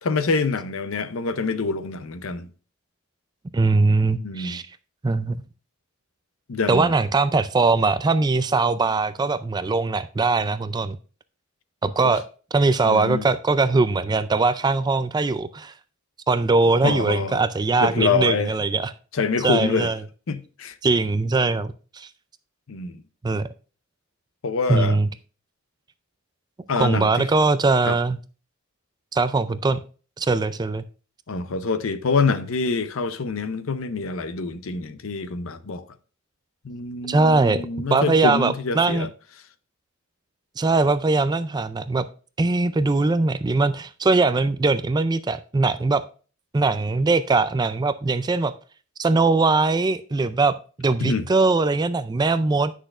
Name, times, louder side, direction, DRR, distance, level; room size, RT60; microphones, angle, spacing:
voice 1, 0.0-2.5 4.2-4.6 6.5-6.9 12.0-12.2 12.8-13.2 16.8-17.4 17.8-18.5 19.1-19.9 20.3-20.7 22.7-22.9 24.4-25.0 26.7-27.2 27.9-28.0 31.3-35.8 36.6-39.1 51.0-51.3, left 4 dB, 70° left, 0.6 m, -26 dB
voice 2, 3.5-4.6 5.0-5.4 6.7-11.0 11.8-12.2 12.5-15.7 16.3-18.9 19.4-20.0 20.8-22.1 23.2-23.5 24.7-25.1 26.8-28.2 29.1-29.8 30.2-30.8 37.1-39.1 40.6-42.1 42.4-46.0 46.5-48.5 49.0-52.7, right 3 dB, 20° right, 0.3 m, -21 dB
10.0 x 6.2 x 2.4 m
head